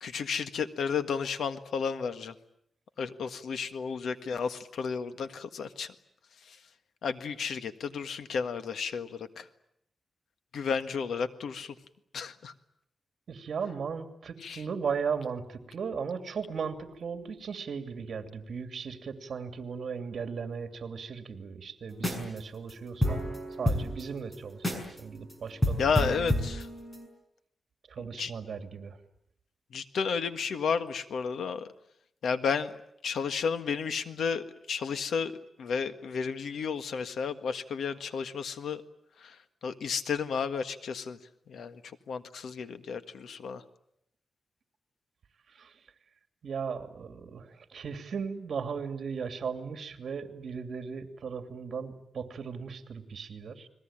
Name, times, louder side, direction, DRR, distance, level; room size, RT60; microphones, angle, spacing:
voice 1, 0.0-2.3 3.0-5.9 6.4-6.6 7.0-9.5 10.5-11.7 12.1-12.5 14.4-14.6 25.8-26.7 28.2-28.3 29.7-31.7 32.2-32.7 33.0-35.3 35.6-38.8 39.2-41.2 41.5-41.8 42.1-43.6, left 6 dB, 85° left, 10 dB, 1.6 m, -32 dB
voice 2, 13.3-26.1 27.9-29.0 45.5-45.7 46.4-53.7, right 6 dB, 60° right, 8 dB, 2.7 m, -37 dB
sound 1, 21.9-22.4 22.7-22.8 23.0-25.0 25.3-25.4 25.6-27.1, equal, 15° left, 6.2 m, -29 dB
30.0 x 21.5 x 8.8 m, 0.74 s
wide cardioid pair, 135°, 0 cm